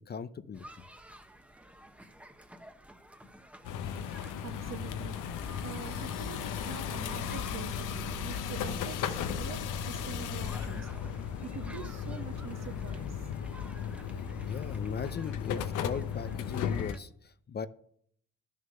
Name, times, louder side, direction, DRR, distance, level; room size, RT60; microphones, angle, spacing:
voice 1, 0.1-0.9 14.1-17.7, left 6 dB, 35° left, 0.5 m, -39 dB
sound 1, 0.5-17.0, right 1 dB, 5° right, 1.0 m, -54 dB
sound 2, 3.6-16.9, left 8 dB, 90° left, 0.9 m, -35 dB
voice 2, 4.1-14.3, right 7 dB, 60° right, 1.2 m, -46 dB
11.0 x 6.7 x 6.5 m
cardioid pair, 90°, 30 cm